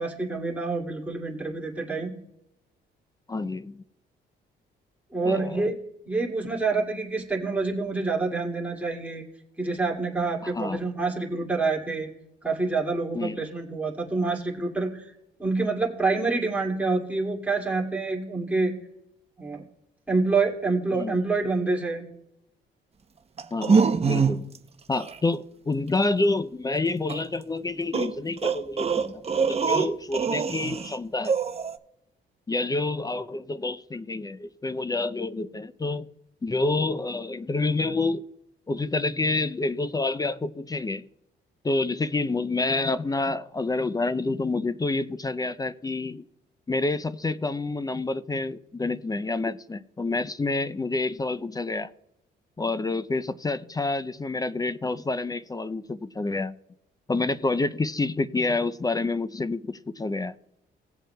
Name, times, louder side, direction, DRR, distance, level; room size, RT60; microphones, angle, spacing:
voice 1, 0.0-2.1 5.1-5.7 6.0-9.2 9.6-12.1 12.4-15.1 15.4-18.7 19.4-19.6 20.1-22.1, right 3 dB, 5° right, 2.3 m, -27 dB
voice 2, 3.3-3.8 5.2-5.6 10.4-10.8 13.1-13.4 20.9-21.2 23.5-24.5 24.9-31.4 32.5-36.1 36.4-38.2 38.7-41.0 41.6-46.2 46.7-51.9 52.6-56.5 57.1-60.4, left 3 dB, 20° left, 0.4 m, -28 dB
sound 1, 23.4-24.6 24.9-25.2 27.1-27.2 27.9-30.9 31.2-31.8, right 5 dB, 30° right, 0.7 m, -24 dB
18.0 x 7.5 x 2.2 m
cardioid pair, 90°, 20 cm